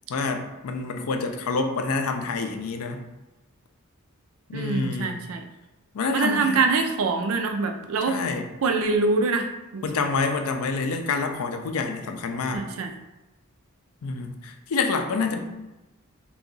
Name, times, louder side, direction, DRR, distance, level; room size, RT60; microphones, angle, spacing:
voice 1, 0.1-3.0 4.5-5.2 5.9-6.6 8.0-8.5 9.8-12.6 14.0-15.4, left 4 dB, 75° left, 6 dB, 0.4 m, -27 dB
voice 2, 4.5-5.4 6.1-8.2 8.6-9.8 12.5-12.9, right 4 dB, 70° right, 5 dB, 0.4 m, -24 dB
2.7 x 2.3 x 3.8 m, 1.0 s
head